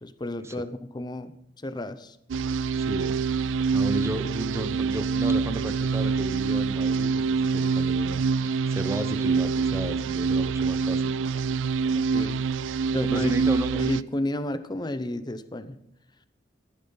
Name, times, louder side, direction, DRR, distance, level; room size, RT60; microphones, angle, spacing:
voice 1, 0.0-2.2 11.9-12.4 12.9-13.4 13.7-15.8, left 1 dB, 25° left, 12 dB, 0.7 m, -32 dB
sound 1, 2.3-14.0, right 5 dB, 85° right, 0.3 m, -26 dB
voice 2, 2.8-11.1 13.1-13.8, right 1 dB, 15° right, 10 dB, 0.7 m, -34 dB
14.5 x 11.5 x 3.9 m, 0.79 s
head